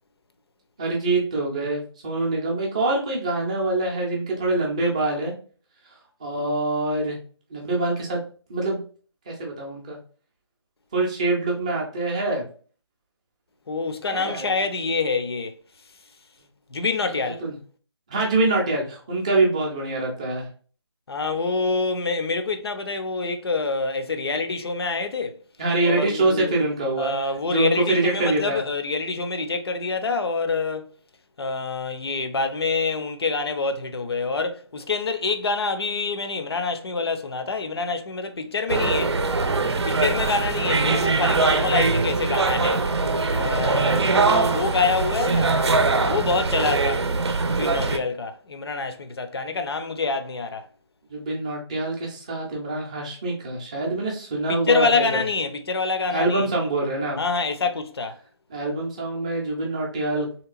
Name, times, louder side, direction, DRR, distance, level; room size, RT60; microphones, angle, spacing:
voice 1, 0.8-5.3 6.2-7.2 7.5-8.2 8.5-8.8 9.3-10.0 10.9-12.4 14.1-14.5 17.4-17.5 18.1-20.5 25.6-27.1 27.5-28.6 51.1-55.2 56.1-57.2 58.5-60.3, right 2 dB, 15° right, 0.5 m, -25 dB
voice 2, 13.7-15.6 16.7-17.4 20.0-20.1 21.1-25.4 25.8-26.5 27.0-30.9 31.4-39.2 39.8-42.8 43.3-45.6 46.1-47.1 47.5-50.7 54.5-56.5 57.1-58.2, left 4 dB, 60° left, 0.5 m, -26 dB
sound 1, 38.7-48.0, right 3 dB, 70° right, 0.6 m, -22 dB
3.1 x 2.9 x 2.4 m
figure-of-eight pair, 165°, 15 cm